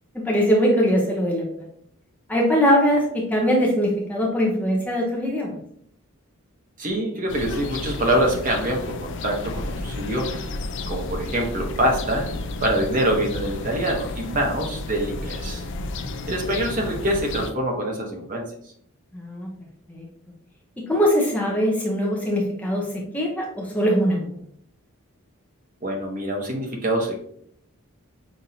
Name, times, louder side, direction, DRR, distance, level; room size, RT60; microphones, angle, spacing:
voice 1, 0.2-1.7 2.3-5.6 16.0-16.1 19.1-19.5 19.9-20.0 20.9-24.4, equal, 5° left, -2 dB, 0.6 m, -22 dB
voice 2, 6.8-10.4 10.9-12.3 12.6-15.6 16.3-18.5 25.8-27.2, right 1 dB, 35° right, 1 dB, 0.8 m, -25 dB
sound 1, 7.3-17.5, left 2 dB, 55° left, 0.4 m, -32 dB
5.8 x 2.6 x 2.7 m, 0.67 s
head